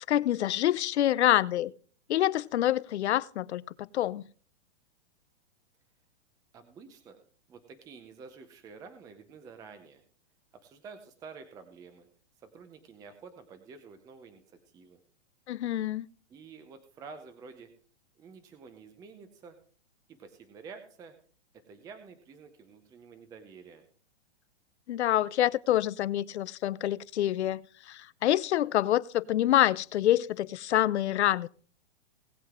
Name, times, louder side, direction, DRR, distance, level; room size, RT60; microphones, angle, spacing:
voice 1, 0.1-1.7 2.1-4.2 15.5-16.1 24.9-31.5, left 13 dB, 75° left, 0.7 m, -26 dB
voice 2, 6.5-7.2 7.5-10.0 10.5-12.1 12.4-15.0 16.3-17.7 18.2-19.6 20.1-21.1 21.7-23.8, right 5 dB, 10° right, 0.6 m, -49 dB
19.0 x 7.6 x 3.6 m
hypercardioid pair, 155°, 34 cm